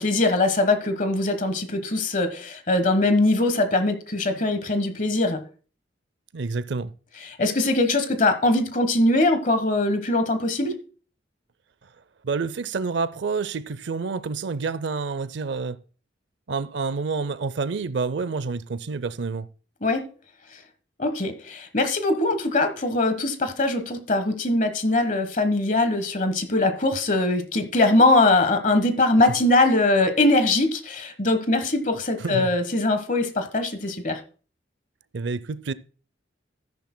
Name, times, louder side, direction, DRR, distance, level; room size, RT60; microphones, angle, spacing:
voice 1, 0.0-5.4 7.2-10.8 19.8-20.1 21.0-34.2, left 2 dB, 45° left, 1.2 m, -22 dB
voice 2, 6.3-6.9 12.2-15.8 16.5-19.5 32.2-32.5 35.1-35.7, right 4 dB, 75° right, 0.5 m, -28 dB
13.5 x 10.5 x 2.2 m
head